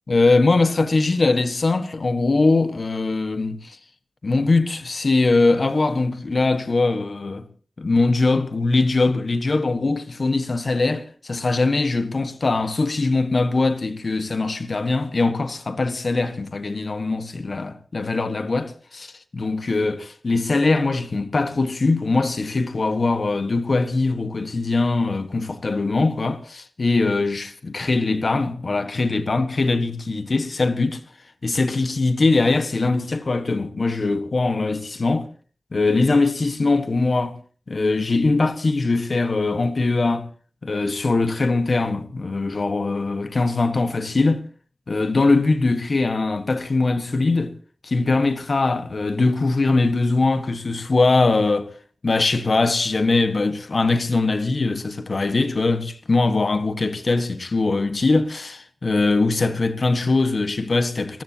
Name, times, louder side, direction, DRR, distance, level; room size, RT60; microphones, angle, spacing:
voice 1, 0.1-3.8 4.2-7.5 7.8-31.0 31.4-35.3 35.7-37.4 37.7-40.3 40.6-44.4 44.9-47.5 47.8-51.7 52.0-61.2, left 3 dB, 60° left, 1.4 m, -21 dB
30.0 x 15.0 x 2.9 m
wide cardioid pair, 80°, 0 cm